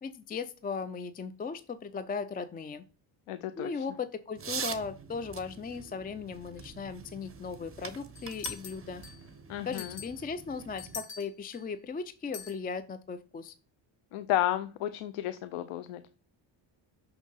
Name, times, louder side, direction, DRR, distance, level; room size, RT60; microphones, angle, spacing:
voice 1, 0.0-2.8 3.6-9.0 9.7-13.5, left 5 dB, 20° left, 13 dB, 0.3 m, -37 dB
voice 2, 3.3-3.7 9.5-9.9 14.1-16.0, left 12 dB, 85° left, 12 dB, 0.7 m, -32 dB
sound 1, 4.3-11.0, right 6 dB, 25° right, 1.2 m, -43 dB
sound 2, 8.2-9.3 9.7-11.7 12.3-12.6, left 7 dB, 60° left, 2.8 m, -43 dB
6.3 x 6.0 x 5.4 m, 0.38 s
cardioid pair, 110°, 50 cm